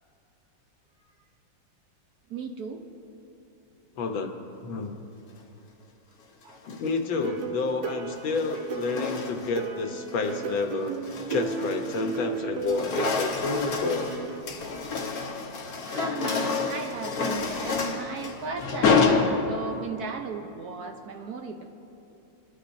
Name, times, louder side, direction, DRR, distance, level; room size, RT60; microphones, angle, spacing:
voice 1, 2.3-2.8 6.4-6.6 15.8-21.7, right 4 dB, 60° right, 4 dB, 1.1 m, -36 dB
voice 2, 4.0-4.3 4.6-5.0 6.7-11.0 11.3-14.1 19.7-19.8, left 4 dB, 80° left, 4 dB, 1.8 m, -30 dB
sound 1, 6.5-7.0 8.1-9.7 10.1-10.4 10.8-12.3 12.5-19.9, left 4 dB, 55° left, 1.4 m, -28 dB
sound 2, 7.1-14.4, right 5 dB, 80° right, 1.5 m, -35 dB
24.0 x 11.5 x 2.7 m, 2.9 s
omnidirectional pair, 2.1 m